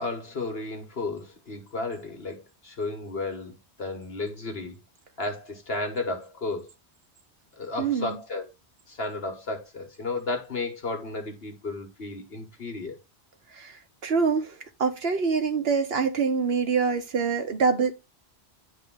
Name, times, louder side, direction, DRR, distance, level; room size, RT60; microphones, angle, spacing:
voice 1, 0.0-4.8 5.2-6.7 7.6-8.5 8.9-13.0, left 2 dB, 60° left, 1.5 m, -33 dB
voice 2, 7.8-8.2 13.5-17.9, right 5 dB, 65° right, 1.2 m, -25 dB
10.0 x 3.6 x 3.6 m
omnidirectional pair, 1.1 m